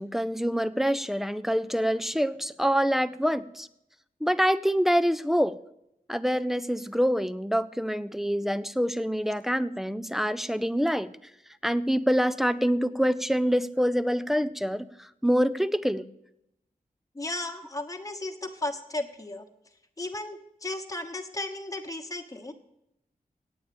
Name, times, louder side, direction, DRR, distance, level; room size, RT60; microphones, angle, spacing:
voice 1, 0.0-3.7 4.2-5.6 6.1-11.1 11.6-16.1, equal, ahead, 13 dB, 0.4 m, -26 dB
voice 2, 17.1-19.5 20.0-22.5, left 2 dB, 20° left, 3 dB, 1.2 m, -35 dB
8.8 x 8.6 x 8.6 m, 0.81 s
wide cardioid pair, 120°, 15 cm